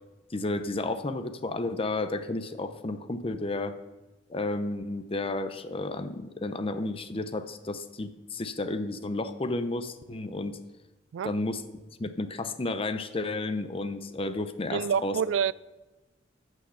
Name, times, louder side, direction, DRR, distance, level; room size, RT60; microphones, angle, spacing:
voice 1, 0.3-3.7 4.3-10.6 11.2-11.6 12.0-15.2, left 2 dB, 30° left, 0.7 m, -32 dB
voice 2, 14.7-15.5, right 7 dB, 90° right, 0.3 m, -27 dB
14.0 x 6.3 x 5.7 m
head